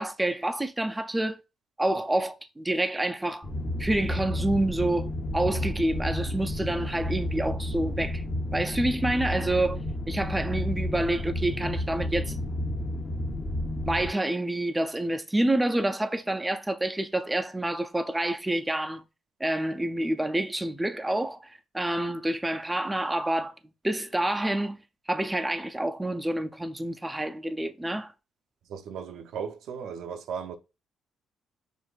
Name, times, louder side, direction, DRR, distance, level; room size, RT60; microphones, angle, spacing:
voice 1, 0.0-1.4 1.8-3.5 3.8-8.2 8.5-12.4 13.9-19.0 19.4-23.5 23.8-24.8 25.1-28.1, right 1 dB, 10° right, 0.4 m, -28 dB
sound 1, 3.4-14.1, left 1 dB, 40° left, 1.0 m, -31 dB
voice 2, 28.7-30.6, right 7 dB, 80° right, 0.5 m, -36 dB
6.2 x 2.5 x 2.3 m
cardioid pair, 90°, 0 cm